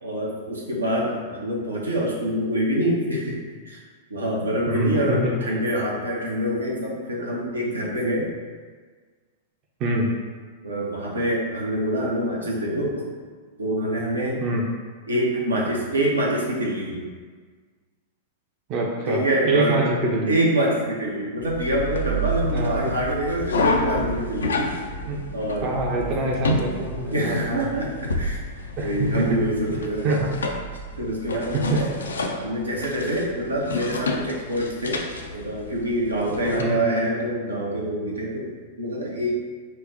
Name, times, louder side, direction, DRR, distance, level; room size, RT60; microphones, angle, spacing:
voice 1, 0.0-3.8 4.1-8.3 10.6-13.1 13.6-14.4 15.1-17.1 19.0-19.9 20.3-24.9 25.3-25.7 27.1-28.4 28.8-30.2 31.0-35.0 35.3-39.4, right 1 dB, 85° right, -3 dB, 0.6 m, -26 dB
voice 2, 4.7-5.3 9.8-10.1 14.4-14.6 18.7-20.3 22.4-23.0 25.1-25.2 25.6-27.7 28.8-29.3 30.0-30.3 31.5-31.8 36.6-36.9, right 2 dB, 40° right, -1 dB, 0.5 m, -25 dB
sound 1, 21.4-36.6, left 1 dB, 75° left, 0.3 m, -29 dB
4.0 x 2.0 x 2.6 m, 1.5 s
figure-of-eight pair, 100°, 0 cm